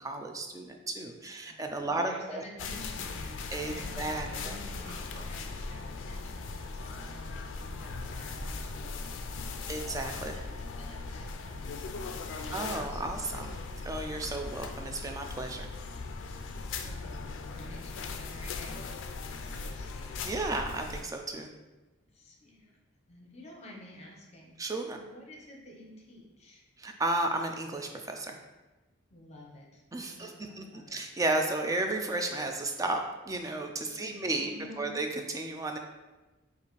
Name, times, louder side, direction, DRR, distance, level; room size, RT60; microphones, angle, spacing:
voice 1, 0.0-2.4 3.5-4.5 9.7-10.3 12.5-15.7 20.2-21.5 24.6-25.0 26.8-28.4 29.9-34.5 34.8-35.8, right 2 dB, 15° right, 4 dB, 0.3 m, -33 dB
voice 2, 1.2-13.5 16.6-20.1 22.1-22.7 23.1-24.6 24.9-26.6 29.1-31.1 33.9-35.0, left 1 dB, 35° left, -1 dB, 0.8 m, -51 dB
sound 1, 2.6-21.0, left 4 dB, 70° left, 0.3 m, -39 dB
sound 2, 4.5-10.5, equal, 80° right, 1.2 m, -50 dB
5.3 x 2.5 x 3.1 m, 1.1 s
head